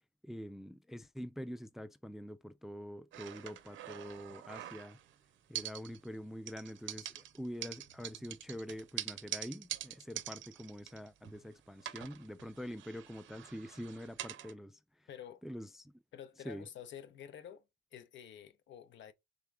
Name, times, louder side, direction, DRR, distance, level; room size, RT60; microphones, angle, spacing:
voice 1, 0.2-5.0 5.5-15.1 15.4-15.9 16.4-16.7, equal, ahead, 0.3 m, -45 dB
sound 1, 3.1-5.1 5.5-6.2 6.5-11.5 11.8-14.5, right 12 dB, 75° right, 0.6 m, -45 dB
voice 2, 15.1-15.4 16.1-17.6 17.9-19.1, left 9 dB, 70° left, 0.7 m, -49 dB
3.6 x 3.6 x 3.3 m
cardioid pair, 90°, 20 cm